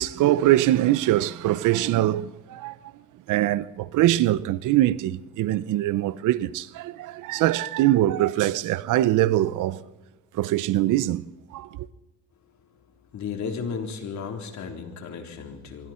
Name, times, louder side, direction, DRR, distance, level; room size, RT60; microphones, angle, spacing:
voice 1, 0.0-2.7 3.3-9.8 10.3-11.2 11.5-11.7, right 14 dB, 90° right, 0.8 m, -23 dB
voice 2, 13.1-15.9, left 6 dB, 70° left, 3.8 m, -34 dB
26.0 x 23.5 x 4.4 m
cardioid pair, 90°, 30 cm